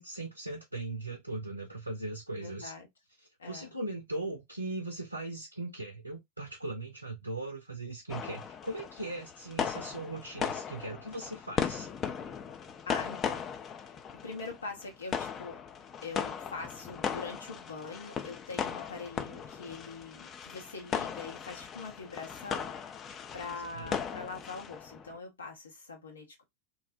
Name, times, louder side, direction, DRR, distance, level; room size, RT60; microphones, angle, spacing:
voice 1, 0.0-2.7 3.4-11.9 23.7-24.0, right 2 dB, 85° right, 0.5 m, -39 dB
voice 2, 2.4-2.9 3.4-3.7 12.9-15.6 16.0-26.4, left 4 dB, 75° left, 0.6 m, -43 dB
sound 1, 8.1-25.2, left 7 dB, 25° left, 0.3 m, -38 dB
2.6 x 2.0 x 2.4 m
figure-of-eight pair, 90°, 0 cm